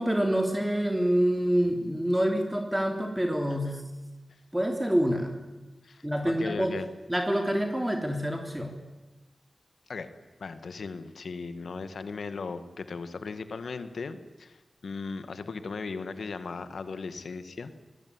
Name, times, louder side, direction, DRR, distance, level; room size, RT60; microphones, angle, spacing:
voice 1, 0.0-3.8 4.5-5.3 6.0-6.8 7.1-8.7, equal, 10° right, 4 dB, 3.4 m, -26 dB
voice 2, 5.8-6.9 9.9-10.1 10.4-17.7, left 4 dB, 80° left, 11 dB, 1.8 m, -37 dB
25.5 x 21.0 x 9.7 m, 1.1 s
wide cardioid pair, 70°, 0 cm